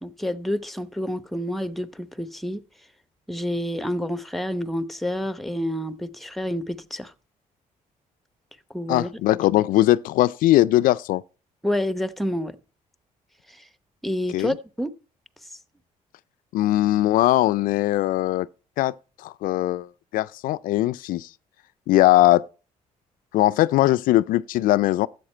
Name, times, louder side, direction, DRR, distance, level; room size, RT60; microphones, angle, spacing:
voice 1, 0.0-2.6 3.3-7.1 8.7-9.1 11.6-12.6 13.5-13.7 14.0-14.9, equal, ahead, 0.9 m, -28 dB
voice 2, 8.9-11.2 14.3-14.5 16.5-18.5 18.8-18.9 19.2-21.3 21.9-22.5 23.3-25.1, left 15 dB, 80° left, 0.4 m, -20 dB
13.0 x 8.1 x 4.3 m
cardioid pair, 90°, 14 cm